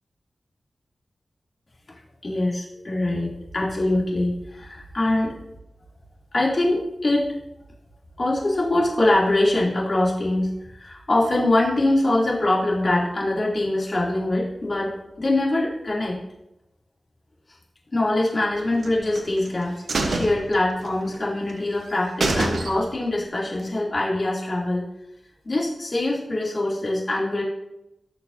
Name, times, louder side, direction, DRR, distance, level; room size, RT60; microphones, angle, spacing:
voice 1, 2.2-5.3 6.3-7.3 8.2-16.2 17.9-19.7 20.1-24.8 25.4-27.4, left 1 dB, 45° left, -5 dB, 3.0 m, -23 dB
sound 1, 18.8-19.5 19.9-21.2 21.5-21.6 21.9-22.0 22.2-23.1 23.5-23.6, right 3 dB, 85° right, 1.1 m, -26 dB
17.5 x 6.6 x 2.8 m, 0.89 s
wide cardioid pair, 90°, 0 cm